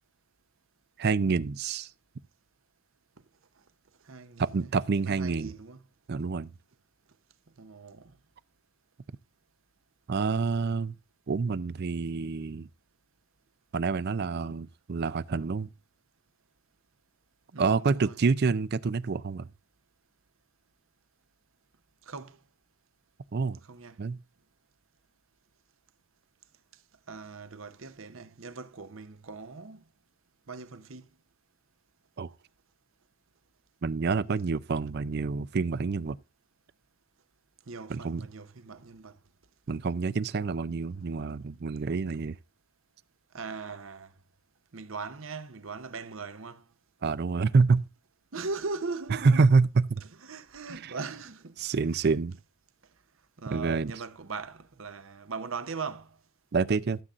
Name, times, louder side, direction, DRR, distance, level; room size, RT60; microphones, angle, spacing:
voice 1, 1.0-1.9 4.4-5.5 6.1-6.5 10.1-10.9 11.3-12.7 13.7-15.7 17.6-19.5 23.3-23.6 24.0-24.2 32.2-32.3 33.8-36.2 37.9-38.3 39.7-42.4 47.0-47.8 49.2-50.0 50.7-50.8 51.6-52.4 53.5-53.9 56.5-57.0, right 4 dB, 45° right, 0.4 m, -27 dB
voice 2, 4.0-5.8 7.6-8.1 17.5-18.2 22.1-22.4 23.6-24.0 27.1-29.8 30.5-31.1 37.7-39.2 43.3-44.1 44.7-46.6 48.3-49.4 50.0-51.6 52.0-52.2 53.4-56.2, right 4 dB, 65° right, 0.9 m, -40 dB
13.5 x 7.5 x 2.5 m
head